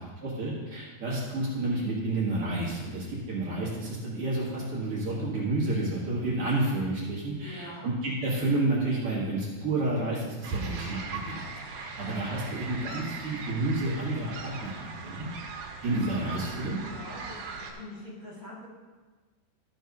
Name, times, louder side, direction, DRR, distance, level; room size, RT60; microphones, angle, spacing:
voice 1, 0.2-11.0 11.3-11.4 11.7-15.3 15.8-16.8, right 2 dB, 50° right, -6 dB, 2.5 m, -30 dB
voice 2, 7.4-8.0 16.8-17.4 17.7-18.7, left 1 dB, 30° left, -7 dB, 2.0 m, -44 dB
sound 1, 10.4-17.7, right 4 dB, 90° right, 2.7 m, -39 dB
13.0 x 4.7 x 5.3 m, 1.3 s
omnidirectional pair, 3.6 m